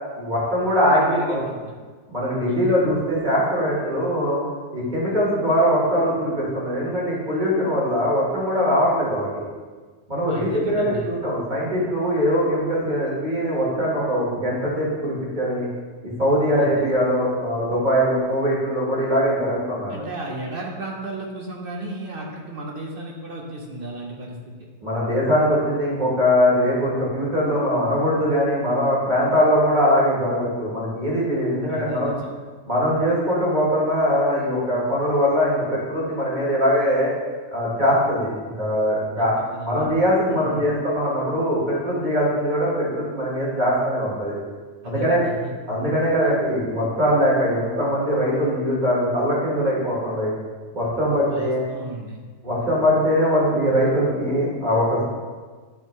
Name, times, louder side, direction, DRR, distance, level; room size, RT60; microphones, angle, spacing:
voice 1, 0.1-1.4 2.1-4.4 4.7-9.4 10.1-15.7 16.2-19.9 24.8-32.2 32.7-37.1 37.5-39.3 39.6-44.3 44.8-45.3 45.7-50.3 50.7-51.6 52.4-55.1, equal, 30° right, -6 dB, 1.7 m, -21 dB
voice 2, 0.9-1.7 2.5-2.8 10.3-11.1 16.6-16.7 19.9-24.5 31.7-32.3 39.2-39.9 40.3-40.7 44.8-45.5 46.2-46.3 51.3-52.2, right 2 dB, 50° right, -1 dB, 0.7 m, -34 dB
9.2 x 3.6 x 3.1 m, 1.4 s
omnidirectional pair, 1.6 m